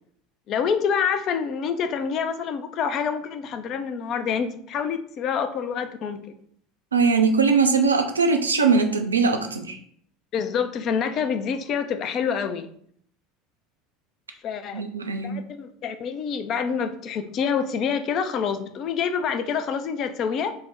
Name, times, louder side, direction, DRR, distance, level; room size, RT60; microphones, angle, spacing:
voice 1, 0.5-6.2 10.3-12.7 14.4-20.5, left 6 dB, 45° left, 9 dB, 0.3 m, -27 dB
voice 2, 6.9-9.8 14.7-15.4, right 4 dB, 80° right, 5 dB, 0.3 m, -21 dB
3.3 x 2.1 x 3.4 m, 0.62 s
figure-of-eight pair, 70°, 0 cm